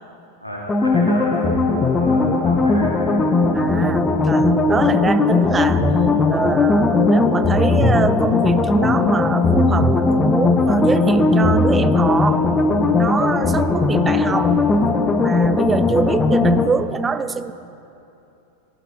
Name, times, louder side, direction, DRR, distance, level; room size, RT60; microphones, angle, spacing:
voice 1, 0.4-3.2 13.3-13.7, left 1 dB, 90° right, -4 dB, 2.5 m, -33 dB
sound 1, 0.7-16.7, left 3 dB, 15° left, 0.9 m, -17 dB
voice 2, 3.5-5.9 6.3-12.4 12.9-14.6 15.2-17.5, right 5 dB, 15° right, 13 dB, 0.5 m, -24 dB
16.5 x 11.5 x 4.1 m, 2.7 s
figure-of-eight pair, 90°, 0 cm